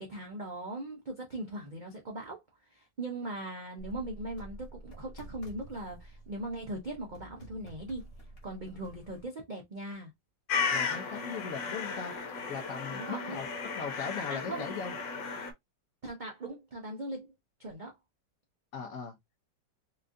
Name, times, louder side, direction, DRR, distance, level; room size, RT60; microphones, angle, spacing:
voice 1, 0.0-2.4 2.7-8.1 8.4-10.1 12.9-13.4 14.3-14.7 16.0-17.3 17.6-17.9, right 1 dB, 70° right, 0.4 m, -39 dB
sound 1, 3.8-9.2, right 1 dB, 40° left, 1.2 m, -49 dB
sound 2, 10.5-15.5, left 5 dB, 80° left, 1.6 m, -35 dB
voice 2, 10.7-12.1 12.5-13.5 13.7-14.9 18.7-19.2, left 6 dB, 65° left, 0.9 m, -39 dB
4.3 x 2.4 x 2.5 m
omnidirectional pair, 2.0 m